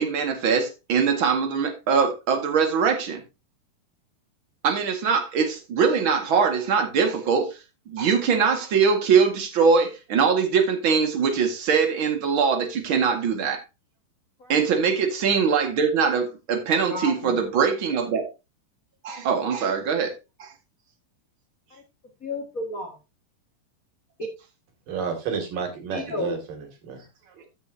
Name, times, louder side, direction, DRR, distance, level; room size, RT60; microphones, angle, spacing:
voice 1, 0.0-3.2 4.6-7.6 7.9-13.6 14.5-18.3 19.0-20.1 20.4-20.5, right 6 dB, 45° right, 2.0 m, -22 dB
voice 2, 16.9-17.4 22.2-23.0 25.9-26.4, left 2 dB, 50° left, 0.9 m, -32 dB
voice 3, 24.9-27.3, right 6 dB, 65° right, 3.9 m, -31 dB
14.5 x 6.6 x 2.8 m
omnidirectional pair, 4.3 m